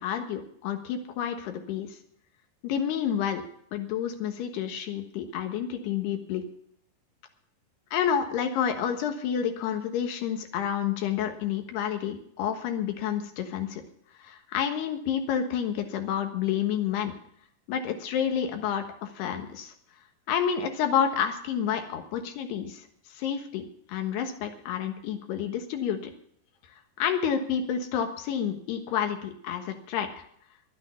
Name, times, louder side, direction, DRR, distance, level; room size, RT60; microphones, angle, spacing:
voice 1, 0.0-2.0 2.6-3.4 3.7-6.4 7.9-13.8 14.2-17.1 17.7-19.7 20.3-22.8 23.1-26.1 27.0-30.1, left 8 dB, 90° left, 5 dB, 3.4 m, -29 dB
11.0 x 8.9 x 9.6 m, 0.67 s
omnidirectional pair, 4.6 m